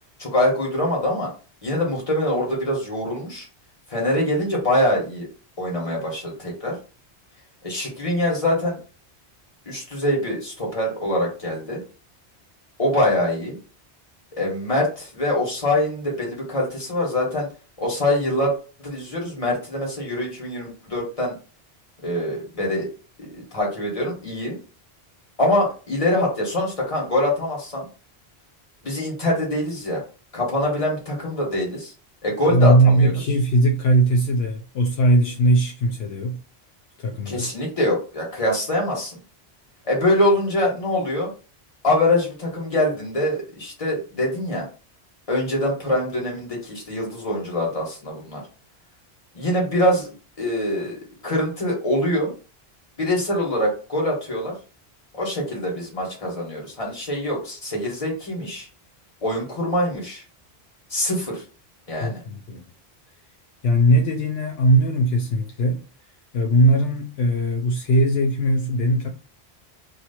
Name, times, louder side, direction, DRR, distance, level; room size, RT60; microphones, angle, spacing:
voice 1, 0.2-1.3 1.6-3.5 3.9-5.3 5.6-6.8 7.6-8.8 9.6-11.8 12.8-13.6 14.4-17.5 17.8-18.5 18.8-21.3 22.0-22.9 23.2-24.6 25.4-27.9 28.8-30.0 30.3-31.9 32.2-33.1 37.2-39.2 39.8-41.3 41.8-44.7 45.3-48.4 49.3-51.0 51.2-52.3 53.0-54.5 55.1-58.7 59.2-60.2 60.9-61.4 61.9-62.2, left 1 dB, 35° left, 1.5 m, -24 dB
voice 2, 32.5-36.4 37.0-37.5 62.0-62.6 63.6-65.8 66.3-69.1, right 1 dB, 75° left, 0.8 m, -19 dB
3.0 x 2.7 x 4.2 m
omnidirectional pair, 1.1 m